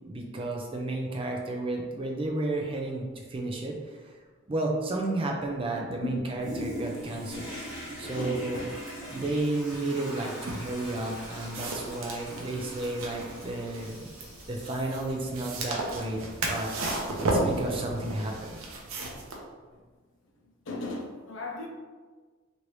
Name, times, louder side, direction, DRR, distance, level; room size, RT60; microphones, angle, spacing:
voice 1, 0.1-4.0 4.5-8.6 9.1-14.1 14.5-16.2 16.5-18.6, right 2 dB, 25° right, 0 dB, 0.4 m, -32 dB
Toilet flush, 6.4-18.8 19.4-19.5, equal, 10° right, 1.1 m, -43 dB
voice 2, 8.0-8.7 20.7-21.7, left 1 dB, 65° left, 0 dB, 0.5 m, -36 dB
sound 1, 10.4-19.4, right 2 dB, 90° right, 0.6 m, -34 dB
3.0 x 2.6 x 3.0 m, 1.4 s
head